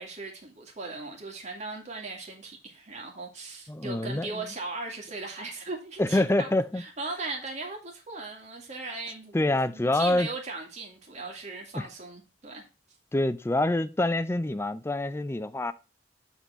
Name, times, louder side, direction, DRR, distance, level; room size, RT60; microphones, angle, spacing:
voice 1, 0.0-6.5 6.8-9.4 9.6-12.6, right 3 dB, 45° right, 2.1 m, -38 dB
voice 2, 3.7-4.4 6.0-6.8 9.3-10.3 11.7-11.9 13.1-15.7, left 1 dB, 15° left, 0.4 m, -26 dB
7.2 x 3.9 x 5.5 m
head